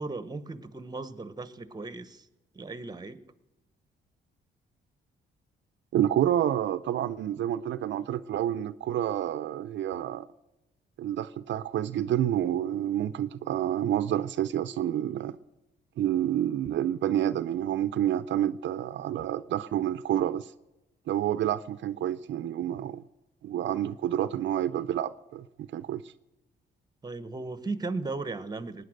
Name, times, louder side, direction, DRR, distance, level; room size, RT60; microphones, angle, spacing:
voice 1, 0.0-2.3 2.5-3.2 24.3-24.5 27.0-28.8, right 3 dB, 20° right, 1.0 m, -36 dB
voice 2, 5.9-10.3 11.0-15.4 16.0-20.5 21.1-23.0 23.4-26.0, right 11 dB, 70° right, 0.6 m, -29 dB
19.0 x 9.5 x 6.4 m
cardioid pair, 90°, 20 cm